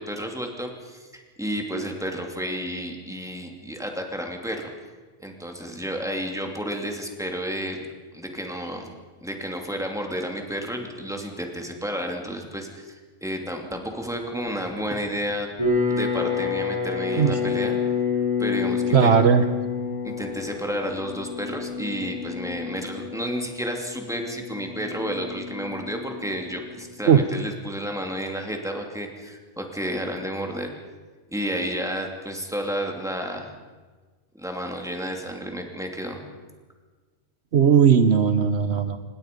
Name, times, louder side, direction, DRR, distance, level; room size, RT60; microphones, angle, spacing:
voice 1, 0.0-4.7 5.2-7.9 8.1-8.9 9.2-15.5 15.9-17.8 18.4-19.1 20.0-30.7 31.3-33.5 34.3-36.2, equal, 5° right, 2 dB, 2.7 m, -31 dB
sound 1, 15.6-26.6, left 5 dB, 25° right, 7.4 m, -28 dB
voice 2, 18.9-19.4 27.1-27.2 37.5-39.0, right 7 dB, 65° right, 9 dB, 1.1 m, -17 dB
26.0 x 20.0 x 5.3 m, 1.4 s
omnidirectional pair, 1.2 m